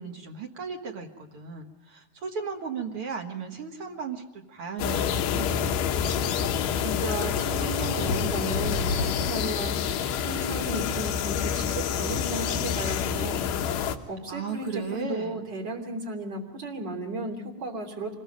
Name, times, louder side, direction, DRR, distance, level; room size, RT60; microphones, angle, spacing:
voice 1, 0.0-5.7 14.3-15.5, right 5 dB, 55° right, 2 dB, 1.5 m, -36 dB
sound 1, 4.8-14.0, left 8 dB, 80° left, 3.3 m, -28 dB
sound 2, 6.7-11.3 14.5-15.0, left 5 dB, 60° left, 2.4 m, -36 dB
voice 2, 6.8-9.9 10.2-18.2, right 2 dB, 30° right, 3 dB, 3.3 m, -35 dB
26.0 x 22.0 x 5.3 m, 1.1 s
omnidirectional pair, 4.9 m